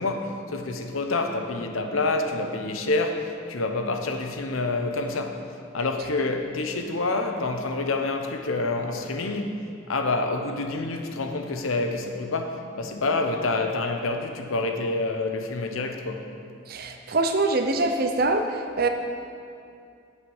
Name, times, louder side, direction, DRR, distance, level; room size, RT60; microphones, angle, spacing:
voice 1, 0.0-5.4 5.7-16.2, left 3 dB, 90° left, 5 dB, 0.9 m, -27 dB
voice 2, 16.7-18.4 18.8-18.9, right 2 dB, 45° right, 5 dB, 0.7 m, -23 dB
7.9 x 6.2 x 7.2 m, 2.4 s
head